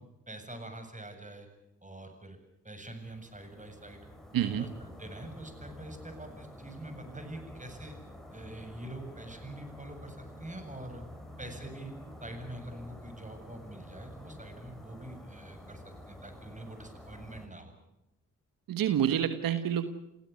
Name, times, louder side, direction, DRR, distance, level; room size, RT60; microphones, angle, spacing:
voice 1, 0.3-1.5 1.8-2.4 2.6-4.1 4.5-7.9 8.3-11.0 11.4-11.9 12.2-17.7, right 1 dB, 20° right, 7 dB, 7.6 m, -45 dB
sound 1, 2.9-17.5, equal, ahead, 7.0 m, -49 dB
voice 2, 4.3-4.7 18.7-19.9, right 9 dB, 85° right, 10 dB, 1.3 m, -28 dB
28.0 x 16.5 x 8.4 m, 0.87 s
supercardioid pair, 45°, 33 cm